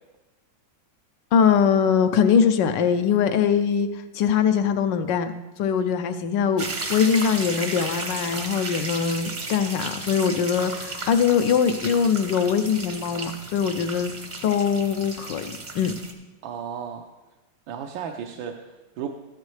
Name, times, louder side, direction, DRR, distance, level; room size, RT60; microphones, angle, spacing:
voice 1, 1.3-5.3 5.6-14.1 14.4-15.9, left 7 dB, 75° left, 9 dB, 1.1 m, -22 dB
sound 1, 6.6-16.1, right 3 dB, 35° right, 0.8 m, -34 dB
voice 2, 16.4-17.1 17.7-19.1, right 8 dB, 75° right, 3 dB, 1.4 m, -34 dB
13.5 x 9.3 x 3.2 m, 1.1 s
omnidirectional pair, 2.2 m